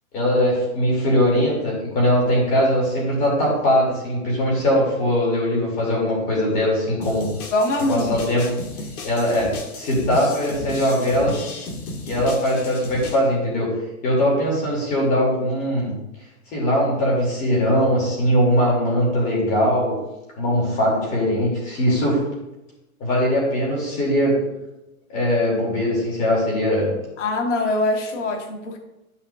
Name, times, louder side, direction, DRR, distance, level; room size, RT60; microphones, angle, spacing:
voice 1, 0.1-7.2 7.9-8.4 9.0-9.5 9.7-11.3 12.0-13.7 14.0-15.9 16.5-19.9 20.4-22.2 23.0-24.4 25.1-26.9, equal, 20° left, -3 dB, 2.6 m, -20 dB
sound 1, 7.0-13.2, left 2 dB, 70° left, 2.0 m, -34 dB
voice 2, 7.5-8.2 27.2-28.8, left 2 dB, 50° left, 4 dB, 1.4 m, -23 dB
12.0 x 5.7 x 2.4 m, 0.98 s
hypercardioid pair, 170°, 44 cm